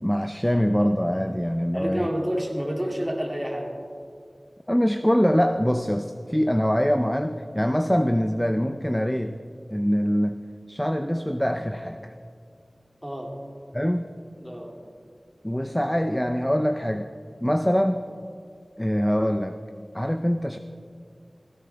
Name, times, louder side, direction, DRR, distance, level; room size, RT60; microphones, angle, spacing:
voice 1, 0.0-2.1 4.7-9.3 9.7-10.4 10.7-12.2 13.7-14.1 15.4-17.1 17.4-18.0 18.8-19.6 19.9-20.6, equal, 10° left, 7 dB, 0.5 m, -24 dB
voice 2, 1.7-3.7 13.0-13.3 14.4-14.7, equal, 10° right, -1 dB, 2.5 m, -29 dB
17.0 x 16.0 x 3.4 m, 2.2 s
wide cardioid pair, 45°, 0 cm